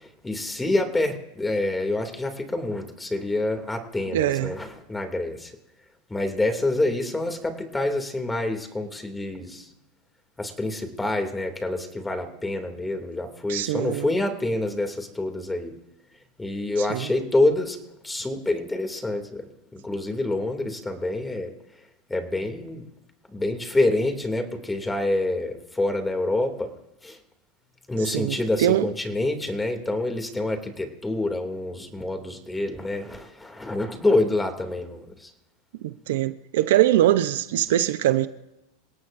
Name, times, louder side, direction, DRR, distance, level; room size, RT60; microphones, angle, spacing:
voice 1, 0.0-5.5 6.1-9.7 10.4-15.7 16.4-17.8 18.0-21.5 22.1-22.9 23.3-26.7 27.0-27.2 27.9-35.3, left 2 dB, 10° left, 2.7 m, -27 dB
voice 2, 4.1-4.5 13.5-14.1 16.8-17.1 28.0-28.9 35.8-38.3, right 13 dB, 75° right, 0.8 m, -23 dB
28.0 x 17.5 x 2.7 m
hypercardioid pair, 105°, 0 cm